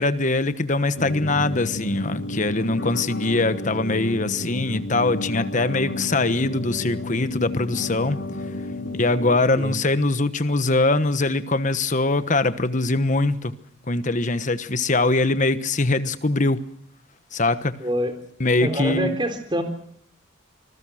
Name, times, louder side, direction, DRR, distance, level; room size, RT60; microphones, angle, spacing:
voice 1, 0.0-8.2 9.0-13.5 13.9-16.6 17.3-17.7 18.4-19.2, left 2 dB, 40° left, 1.2 m, -22 dB
sound 1, 1.0-9.4, left 2 dB, 70° left, 3.7 m, -31 dB
voice 2, 17.8-18.1 18.6-19.6, equal, 25° right, 3.9 m, -25 dB
26.5 x 20.5 x 6.4 m
head